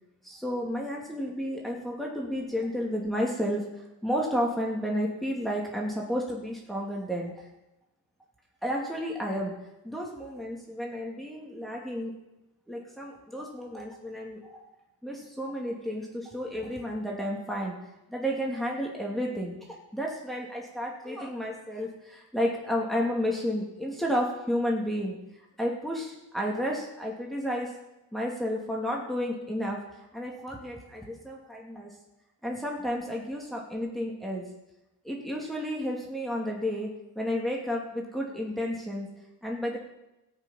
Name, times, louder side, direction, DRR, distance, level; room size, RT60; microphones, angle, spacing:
voice 1, 0.2-7.5 8.6-9.6 9.8-12.1 12.7-14.6 15.0-17.7 18.1-25.2 25.6-27.7 28.1-31.9 32.4-34.4 35.0-36.9 37.2-39.1 39.4-39.8, equal, ahead, -2 dB, 2.7 m, -32 dB
14.5 x 8.4 x 5.8 m, 0.96 s
cardioid pair, 65°, 38 cm